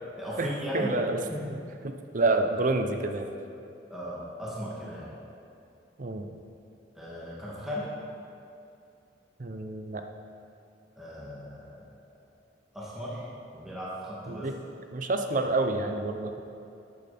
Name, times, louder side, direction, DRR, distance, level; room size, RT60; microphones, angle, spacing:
voice 1, 0.2-0.9 1.3-1.4 3.9-5.1 6.9-7.9 11.0-11.9 12.7-13.2 13.5-14.5, equal, ahead, -8 dB, 2.1 m, -37 dB
voice 2, 0.7-1.2 1.8-3.4 6.0-6.3 9.4-10.0 14.3-14.5 14.9-16.4, right 2 dB, 45° right, 6 dB, 0.7 m, -28 dB
13.5 x 8.6 x 4.2 m, 2.7 s
head